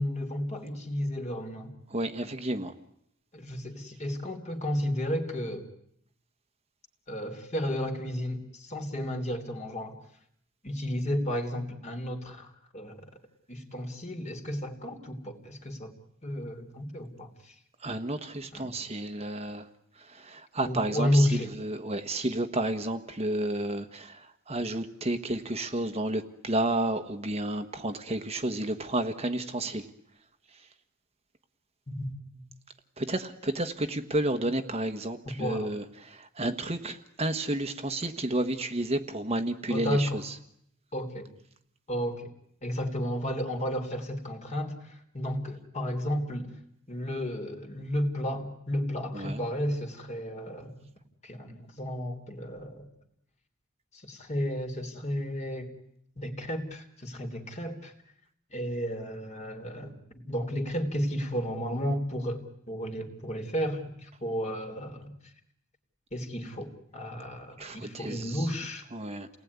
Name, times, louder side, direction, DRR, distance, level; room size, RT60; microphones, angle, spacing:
voice 1, 0.0-1.7 3.3-5.7 7.1-10.0 10.6-13.1 13.5-15.9 16.2-17.6 18.5-18.7 20.6-21.5 31.9-32.4 35.4-35.7 39.7-40.2 40.9-41.3 41.9-42.3 42.6-46.5 46.9-50.8 51.2-52.9 53.9-55.7 56.2-57.9 58.5-65.1 66.1-68.8, equal, 35° left, 5 dB, 3.4 m, -32 dB
voice 2, 1.9-2.7 17.8-19.7 19.9-29.9 30.5-30.6 33.0-40.3 49.1-49.4 67.6-68.5 68.9-69.3, right 1 dB, 30° right, 8 dB, 1.4 m, -31 dB
29.5 x 19.5 x 9.6 m, 0.75 s
head